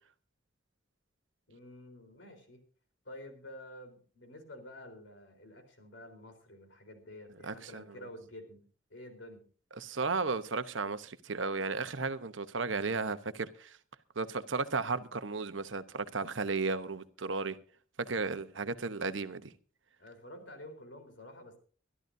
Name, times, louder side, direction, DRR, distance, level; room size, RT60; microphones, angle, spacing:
voice 1, 1.5-2.6 3.1-8.7 8.9-9.4 20.0-21.6, left 1 dB, 70° left, 4.0 m, -50 dB
voice 2, 7.4-8.0 9.8-13.8 14.2-17.6 18.0-19.5, right 4 dB, 80° right, 1.0 m, -34 dB
24.0 x 12.5 x 2.7 m
head